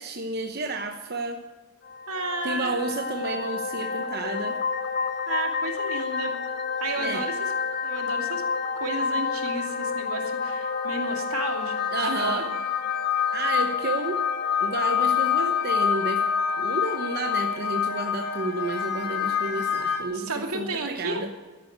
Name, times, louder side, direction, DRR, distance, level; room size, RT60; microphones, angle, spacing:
voice 1, 0.0-1.4 2.4-4.6 7.0-7.2 11.9-12.5 13.3-14.2 14.6-16.2 16.5-21.3, right 2 dB, 45° right, 4 dB, 0.9 m, -31 dB
sound 1, 1.9-20.0, left 6 dB, 45° left, 1.6 m, -28 dB
voice 2, 2.1-2.7 5.3-6.4 6.8-7.5 7.8-8.4 8.8-12.5 20.1-21.2, right 3 dB, 80° right, 3 dB, 2.7 m, -32 dB
13.5 x 10.5 x 8.1 m, 1.3 s
head